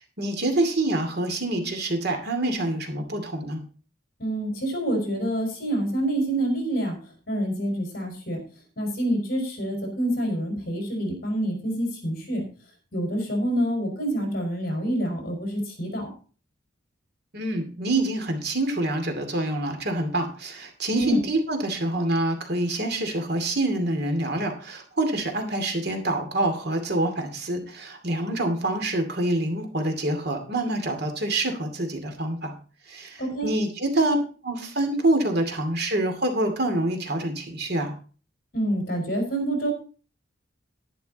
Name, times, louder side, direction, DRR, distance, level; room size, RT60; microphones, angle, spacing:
voice 1, 0.0-3.6 17.3-32.5 32.8-34.2 34.4-37.9, right 1 dB, 50° right, 5 dB, 2.5 m, -26 dB
voice 2, 4.2-8.4 8.8-12.4 12.9-16.1 20.9-21.2 33.2-33.5 38.5-39.7, right 1 dB, 50° left, 2 dB, 5.1 m, -27 dB
11.0 x 11.0 x 4.1 m, 0.38 s
head